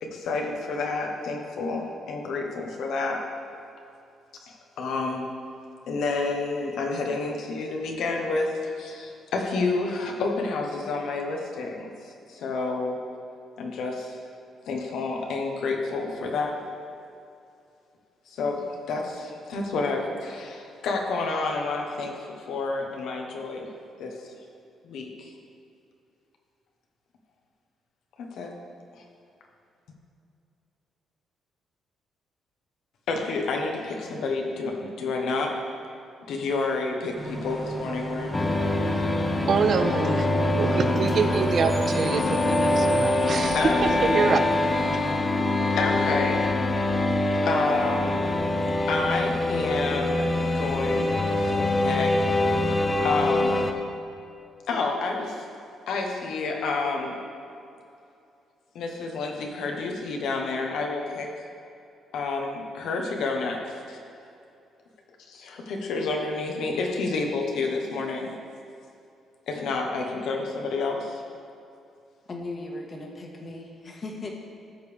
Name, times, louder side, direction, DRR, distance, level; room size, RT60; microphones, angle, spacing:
voice 1, 0.0-3.2 4.4-5.2 5.9-11.9 12.3-13.0 13.6-14.2 14.7-16.5 18.3-23.7 24.0-24.1 24.8-25.3 28.3-28.5 33.1-35.6 36.3-38.4 43.5-43.8 45.8-46.5 47.4-48.2 48.9-50.3 50.5-52.1 53.0-53.6 54.7-55.4 55.9-57.1 58.7-61.3 62.1-64.0 65.3-68.3 69.5-71.2, left 3 dB, 75° left, 1 dB, 1.2 m, -29 dB
Bus / Idling / Screech, 37.2-45.2, right 1 dB, ahead, 2.2 m, -36 dB
sound 1, 38.3-53.7, left 2 dB, 15° left, 0.8 m, -24 dB
voice 2, 39.5-40.3 40.6-43.6 43.8-44.4, right 5 dB, 55° right, 9 dB, 0.5 m, -25 dB
voice 3, 72.3-74.3, left 2 dB, 40° left, 0 dB, 1.6 m, -37 dB
13.5 x 6.7 x 3.5 m, 2.6 s
cardioid pair, 90°, 0 cm